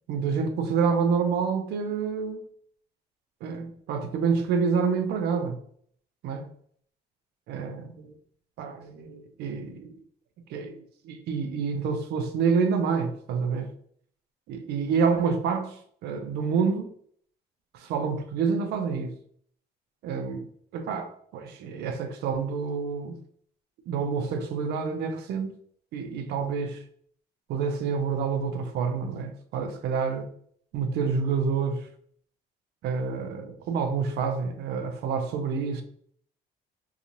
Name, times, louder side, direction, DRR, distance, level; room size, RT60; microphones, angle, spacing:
voice 1, 0.1-2.4 3.4-5.6 6.2-6.5 7.5-7.8 8.6-9.9 10.5-13.7 14.5-15.8 16.0-16.9 17.7-19.1 20.0-20.4 20.7-23.2 23.9-25.5 25.9-26.8 27.5-30.3 30.7-31.9 32.8-35.8, right 5 dB, 75° right, 0.5 m, -28 dB
2.9 x 2.3 x 2.6 m
cardioid pair, 110°, 17 cm